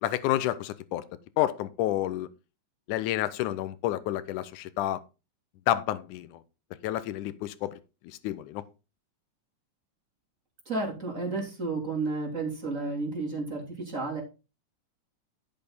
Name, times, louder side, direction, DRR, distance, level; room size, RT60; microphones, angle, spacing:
voice 1, 0.0-1.0 1.4-2.3 2.9-5.0 5.7-6.4 6.8-7.7 8.0-8.6, left 13 dB, 90° left, 2.2 m, -29 dB
voice 2, 10.6-14.2, right 3 dB, 25° right, 3.5 m, -32 dB
12.0 x 6.9 x 4.1 m
omnidirectional pair, 3.4 m